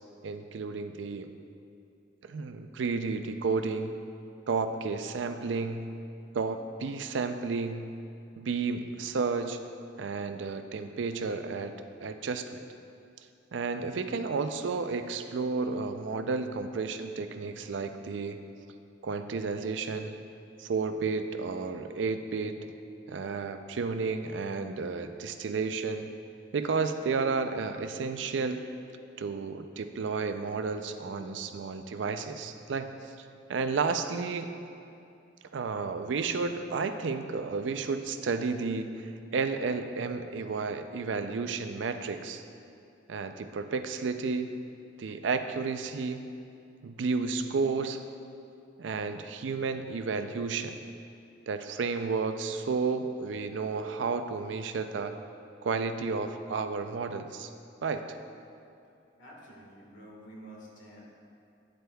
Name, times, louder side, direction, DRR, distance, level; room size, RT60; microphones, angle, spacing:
voice 1, 0.2-1.3 2.2-3.9 4.5-5.9 6.3-7.9 8.4-9.6 10.0-11.7 12.0-12.6 13.5-18.4 19.0-20.2 20.6-22.6 23.1-26.1 26.5-28.6 29.2-33.1 33.5-34.5 35.5-42.4 43.1-44.5 45.0-46.3 46.8-48.0 48.8-50.8 51.5-55.1 55.6-57.5 57.8-58.0, right 4 dB, 75° right, 8 dB, 0.4 m, -32 dB
voice 2, 59.2-61.1, right 1 dB, 85° left, -3 dB, 1.6 m, -49 dB
9.8 x 7.8 x 2.3 m, 2.5 s
head